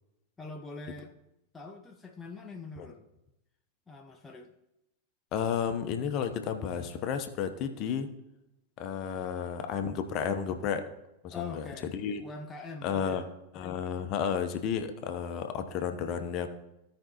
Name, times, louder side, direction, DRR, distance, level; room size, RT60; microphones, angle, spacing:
voice 1, 0.4-1.1 1.5-3.1 3.9-4.5 11.3-13.3, left 3 dB, 15° left, 3 dB, 0.7 m, -44 dB
voice 2, 5.3-8.1 8.8-10.8 11.2-11.6 11.9-12.2 12.8-13.2 13.5-16.5, left 7 dB, 40° left, 7 dB, 1.0 m, -32 dB
16.0 x 5.3 x 3.0 m, 0.90 s
figure-of-eight pair, 90°, 0 cm